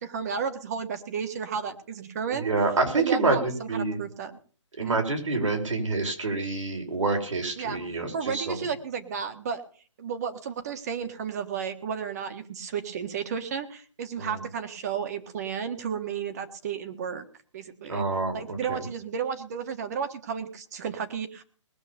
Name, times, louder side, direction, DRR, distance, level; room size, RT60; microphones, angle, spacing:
voice 1, 0.0-2.5 3.0-4.3 4.8-5.0 7.6-7.8 8.1-9.6 10.0-17.2 17.5-18.1 18.3-21.4, right 7 dB, 30° right, 9 dB, 1.5 m, -33 dB
voice 2, 2.3-4.0 4.8-8.6 14.2-14.4 17.9-18.8, right 3 dB, 90° right, 3 dB, 5.1 m, -27 dB
20.0 x 7.2 x 6.9 m, 0.43 s
hypercardioid pair, 170°, 16 cm